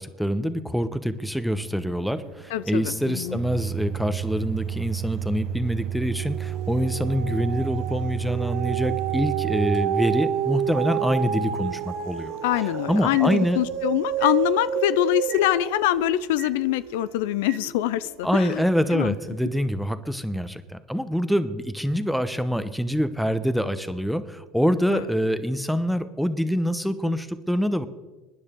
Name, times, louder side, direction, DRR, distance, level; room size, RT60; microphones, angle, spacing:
voice 1, 0.0-12.4 12.9-13.6 18.2-27.9, equal, ahead, 12 dB, 1.0 m, -25 dB
Microwave oven, 1.2-13.8 14.2-14.4 15.3-15.5 16.4-16.5 17.5-17.6, right 10 dB, 45° right, 0.4 m, -34 dB
voice 2, 2.5-3.4 12.4-18.6 18.9-19.2 24.9-25.1, left 15 dB, 75° left, 17 dB, 0.4 m, -24 dB
sound 1, 5.0-5.5 5.9-18.4 18.9-19.0, right 10 dB, 75° right, 1.5 m, -30 dB
24.0 x 10.0 x 3.8 m, 1.1 s
supercardioid pair, 95°, 0 cm